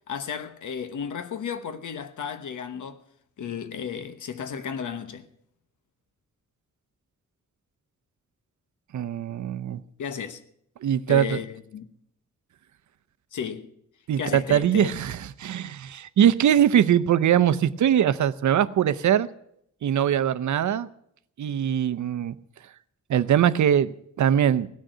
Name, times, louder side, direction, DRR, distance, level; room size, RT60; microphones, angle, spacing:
voice 1, 0.1-3.0 3.4-5.3 10.0-10.4 11.1-11.9 13.3-13.7 14.2-15.0, left 7 dB, 85° left, 1.1 m, -33 dB
voice 2, 8.9-9.8 10.8-11.4 14.1-19.3 19.8-20.9 21.4-22.3 23.1-24.7, right 9 dB, 75° right, 0.6 m, -22 dB
18.5 x 6.4 x 9.0 m
wide cardioid pair, 155°, 29 cm